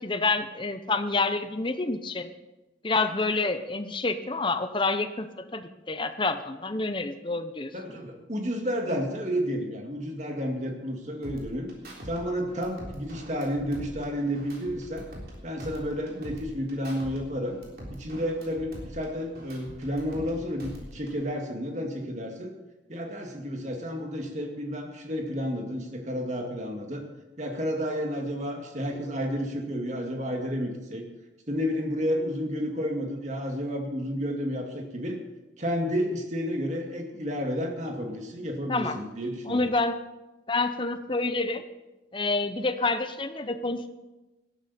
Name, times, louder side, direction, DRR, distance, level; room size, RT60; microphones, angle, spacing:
voice 1, 0.0-2.3 2.8-7.7 8.9-9.0 38.7-39.0 39.5-40.0 40.5-41.6 42.1-43.9, left 3 dB, 25° left, 9 dB, 0.8 m, -28 dB
voice 2, 7.7-11.7 12.0-15.1 15.4-17.6 17.9-22.5 22.9-27.0 27.4-31.0 31.5-35.2 35.6-39.7, equal, 40° right, 2 dB, 2.2 m, -31 dB
sound 1, 11.2-12.2 12.5-15.3 15.6-17.2 17.5-20.3 20.6-21.2, equal, 55° right, 3.6 m, -43 dB
18.0 x 12.5 x 4.3 m, 1.1 s
head